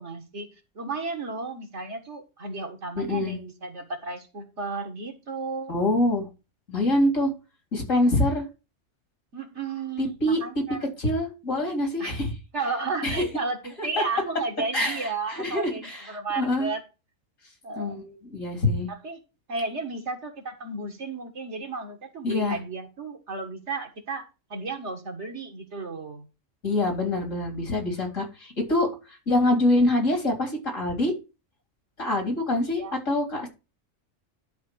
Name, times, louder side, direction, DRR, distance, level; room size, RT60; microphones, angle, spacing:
voice 1, 0.0-5.8 9.3-10.9 12.0-12.2 12.5-16.8 17.6-18.0 18.9-19.2 19.5-26.3 32.6-33.0, right 3 dB, 60° right, 1.9 m, -33 dB
voice 2, 3.0-3.4 5.7-6.3 6.7-7.3 7.7-8.5 10.0-10.4 11.0-12.3 13.0-13.2 14.7-16.0 16.4-16.7 17.8-18.9 22.2-22.6 26.6-28.9 29.3-31.1 32.0-33.5, left 1 dB, 80° left, 4.0 m, -25 dB
11.5 x 3.9 x 6.2 m
omnidirectional pair, 1.3 m